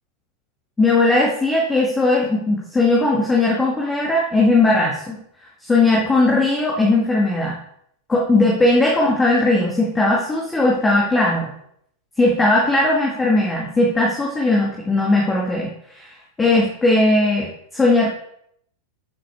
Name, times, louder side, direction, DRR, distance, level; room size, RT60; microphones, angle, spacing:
voice 1, 0.8-5.2 5.6-7.6 8.1-11.5 12.2-15.7 15.9-16.1 16.4-17.5 17.7-18.1, left 2 dB, 15° left, -3 dB, 2.1 m, -18 dB
11.5 x 7.5 x 3.6 m, 0.70 s
figure-of-eight pair, 90°, 0 cm